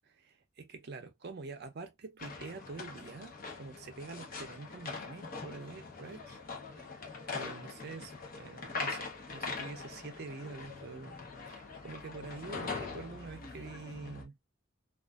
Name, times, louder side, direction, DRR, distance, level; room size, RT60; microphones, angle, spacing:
voice 1, 0.0-6.4 6.7-7.0 7.3-14.4, right 3 dB, 55° right, 0.5 m, -46 dB
sound 1, 2.2-14.2, left 4 dB, 45° left, 0.7 m, -42 dB
2.5 x 2.4 x 2.2 m
head